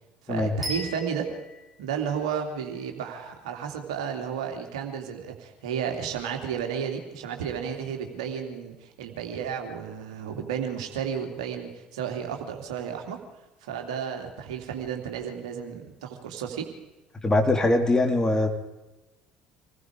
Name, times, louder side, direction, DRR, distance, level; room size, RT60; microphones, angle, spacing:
voice 1, 0.2-1.3 1.8-13.2 13.6-16.7, right 7 dB, 70° right, 4 dB, 3.0 m, -32 dB
sound 1, 0.6-2.7, equal, ahead, 6.0 m, -37 dB
voice 2, 17.2-18.5, left 2 dB, 15° left, 4 dB, 3.3 m, -22 dB
26.0 x 20.0 x 5.0 m, 1.0 s
figure-of-eight pair, 60°, 4 cm